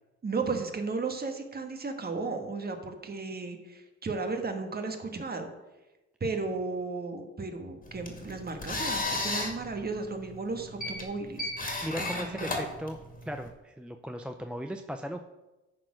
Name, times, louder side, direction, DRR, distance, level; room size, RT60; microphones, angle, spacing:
voice 1, 0.2-5.5 6.2-11.5 12.0-12.5, right 3 dB, 30° right, 5 dB, 1.5 m, -34 dB
sound 1, 7.8-13.5, left 2 dB, 25° left, 2.3 m, -35 dB
voice 2, 11.8-13.0 13.3-15.2, equal, 5° right, 6 dB, 0.5 m, -37 dB
10.0 x 4.3 x 6.4 m, 1.1 s
cardioid pair, 90°, 30 cm